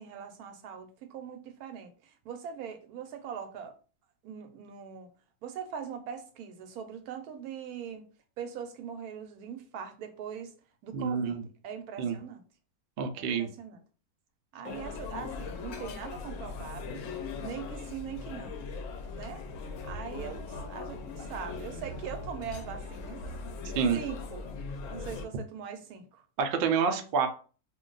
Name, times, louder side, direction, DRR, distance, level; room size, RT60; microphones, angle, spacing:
voice 1, 0.0-3.8 4.2-5.1 5.4-8.0 8.4-10.5 10.8-12.4 13.1-13.8 14.5-17.1 17.4-18.6 19.1-19.4 19.8-23.2 23.9-24.5 24.9-26.3 26.9-27.1, right 7 dB, 90° right, 1.1 m, -41 dB
voice 2, 10.9-11.4 12.0-12.2 13.0-13.5 23.7-24.0 26.4-27.3, right 6 dB, 70° right, 0.5 m, -28 dB
sound 1, 14.6-25.2, left 4 dB, 70° left, 0.9 m, -40 dB
2.5 x 2.2 x 3.8 m
omnidirectional pair, 1.5 m